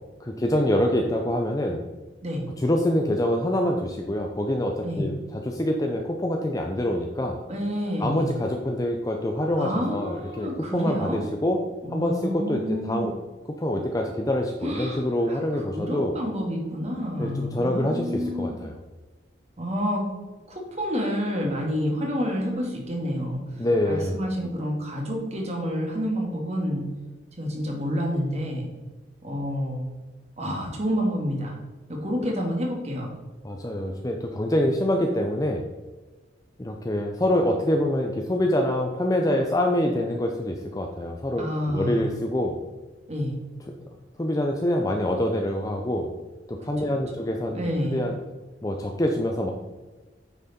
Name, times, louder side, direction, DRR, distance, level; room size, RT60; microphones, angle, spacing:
voice 1, 0.2-1.8 2.6-7.4 8.0-11.6 11.9-13.1 13.6-16.1 17.2-18.8 23.6-24.2 33.4-35.6 36.6-42.6 44.2-46.1 46.5-47.6 47.9-48.2 48.6-49.5, left 1 dB, 20° left, 2 dB, 0.6 m, -25 dB
voice 2, 7.5-8.3 9.6-11.2 11.8-13.1 14.6-18.6 19.6-20.1 20.5-26.9 27.4-28.7 29.2-29.9 30.4-31.6 31.9-33.1 41.4-42.1 43.1-43.4 46.8-47.2 47.5-48.1, equal, 35° right, 0 dB, 2.1 m, -29 dB
9.0 x 6.1 x 4.3 m, 1.3 s
head